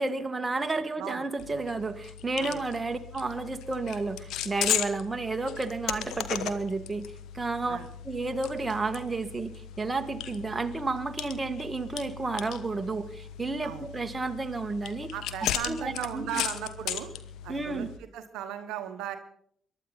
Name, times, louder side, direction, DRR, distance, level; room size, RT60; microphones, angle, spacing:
voice 1, 0.0-7.0 7.3-7.8 8.0-15.1 15.4-16.4 17.5-17.9, right 3 dB, 25° right, 8 dB, 1.8 m, -31 dB
sound 1, 1.4-18.0, left 10 dB, 75° left, 1.0 m, -37 dB
voice 2, 15.1-17.1 17.4-17.8 18.1-19.2, right 10 dB, 75° right, 8 dB, 1.1 m, -36 dB
23.0 x 11.5 x 4.1 m, 0.64 s
hypercardioid pair, 45°, 0 cm